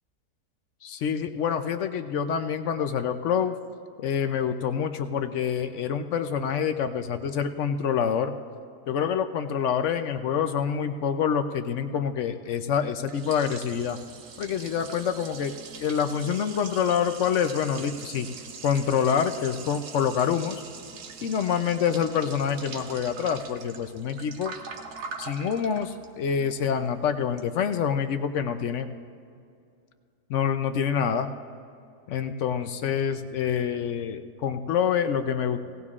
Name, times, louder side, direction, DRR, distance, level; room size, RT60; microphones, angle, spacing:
voice 1, 0.8-3.6 4.0-8.3 8.9-14.0 14.4-18.3 18.6-20.6 21.2-24.6 25.2-28.9 30.3-31.3 32.1-35.6, left 7 dB, 65° left, 8 dB, 0.8 m, -26 dB
Liquid, 12.7-27.8, right 5 dB, 80° right, 1.4 m, -43 dB
17.5 x 17.5 x 2.4 m, 2.4 s
omnidirectional pair, 1.7 m